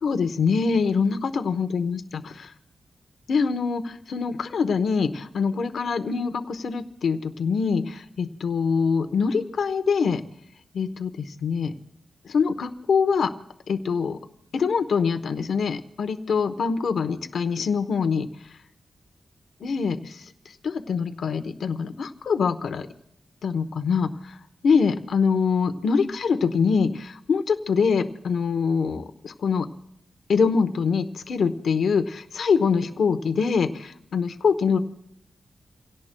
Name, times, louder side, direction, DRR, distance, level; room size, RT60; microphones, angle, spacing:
voice 1, 0.0-2.5 3.3-10.2 10.7-11.7 12.2-13.3 13.7-14.2 14.5-18.3 19.6-20.3 20.6-22.9 23.4-24.4 24.6-29.7 30.3-34.8, left 5 dB, 80° left, 9 dB, 0.9 m, -24 dB
29.5 x 17.0 x 2.2 m, 0.77 s
wide cardioid pair, 120°, 0 cm